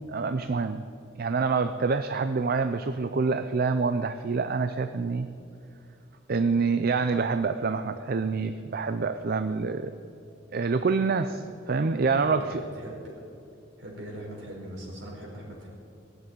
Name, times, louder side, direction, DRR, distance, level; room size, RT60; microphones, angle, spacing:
voice 1, 0.1-0.8 1.2-5.3 6.3-9.9 10.5-12.4, right 4 dB, 50° right, 10 dB, 0.5 m, -26 dB
voice 2, 12.2-13.1 13.8-15.7, right 1 dB, 65° right, -2 dB, 4.6 m, -40 dB
19.0 x 8.1 x 9.2 m, 2.6 s
head